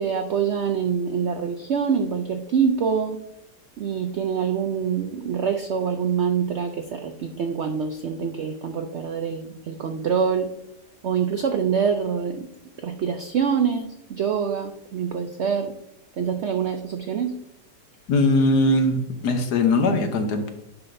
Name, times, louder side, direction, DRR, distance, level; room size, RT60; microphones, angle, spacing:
voice 1, 0.0-3.2 3.8-10.5 11.0-12.4 12.8-15.7 16.2-17.3, right 7 dB, 80° right, 6 dB, 0.6 m, -25 dB
voice 2, 18.1-20.5, left 2 dB, 70° left, 6 dB, 1.5 m, -20 dB
9.8 x 5.8 x 2.6 m, 0.83 s
omnidirectional pair, 1.8 m